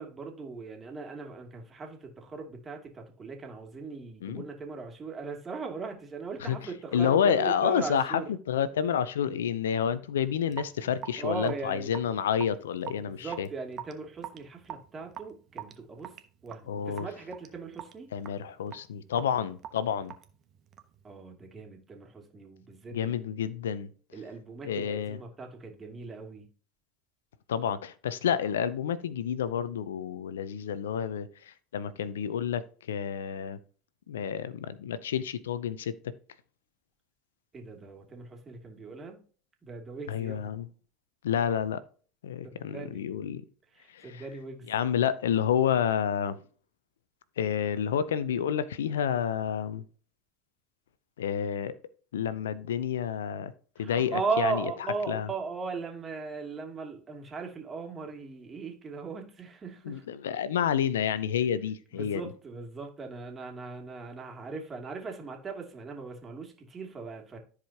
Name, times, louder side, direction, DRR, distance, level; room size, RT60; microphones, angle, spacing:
voice 1, 0.0-8.3 11.2-12.0 13.0-16.1 16.4-18.1 21.0-23.3 24.1-26.5 37.5-39.2 39.6-40.5 42.5-43.0 43.7-44.7 53.8-60.0 61.9-67.4, right 4 dB, 30° right, 2.6 m, -38 dB
voice 2, 6.9-13.5 16.7-17.1 18.1-20.1 22.9-23.9 24.6-25.2 27.5-33.6 34.1-36.1 40.1-40.7 41.2-41.8 42.2-43.4 43.9-44.2 44.7-46.4 47.4-49.8 51.2-51.7 52.1-53.5 53.8-54.6 55.1-55.3 59.9-62.2, left 8 dB, 90° left, 0.6 m, -29 dB
Raindrop / Drip, 10.5-21.0, right 10 dB, 45° right, 1.1 m, -45 dB
14.0 x 4.9 x 2.9 m
hypercardioid pair, 85°, 0 cm